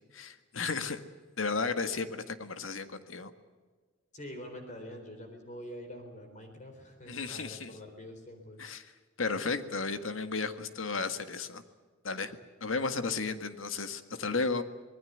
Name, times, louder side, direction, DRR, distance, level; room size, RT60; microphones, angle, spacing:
voice 1, 0.1-1.0 1.4-3.3 7.1-7.7 8.6-8.8 9.2-11.6 12.0-14.6, left 4 dB, 85° left, 9 dB, 1.8 m, -34 dB
voice 2, 4.1-8.6, equal, 40° left, 5 dB, 3.9 m, -45 dB
26.0 x 20.0 x 8.0 m, 1.5 s
head